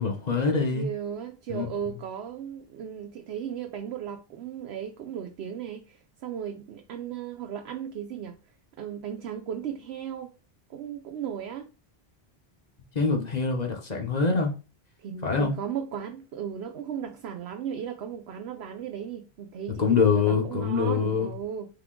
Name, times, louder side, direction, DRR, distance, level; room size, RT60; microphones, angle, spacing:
voice 1, 0.0-0.9 1.5-1.6 12.9-14.5 15.2-15.5 19.8-21.3, left 5 dB, 45° left, 1.0 m, -24 dB
voice 2, 0.7-8.4 8.8-10.3 10.7-11.7 15.0-21.7, right 8 dB, 85° right, 0.9 m, -36 dB
3.8 x 3.5 x 3.7 m
omnidirectional pair, 1.1 m